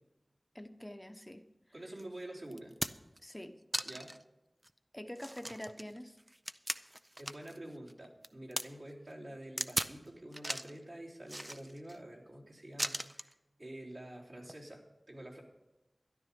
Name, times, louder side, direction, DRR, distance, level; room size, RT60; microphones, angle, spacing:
voice 1, 0.5-1.4 3.2-3.6 4.9-6.2, left 1 dB, 15° left, 7 dB, 1.0 m, -46 dB
voice 2, 1.7-2.7 3.8-4.1 6.6-6.9 7.2-13.3 13.6-15.4, right 1 dB, 65° right, -4 dB, 3.3 m, -48 dB
sound 1, 2.0-2.1 2.5-3.2 3.7-4.2 4.6-4.7 5.2-7.6 7.9-8.6 9.6-10.0 10.3-10.8 11.3-12.0 12.8-13.3 14.4-14.6, right 1 dB, 20° right, 0.5 m, -38 dB
13.0 x 11.0 x 5.3 m, 1.0 s
wide cardioid pair, 55°, 0 cm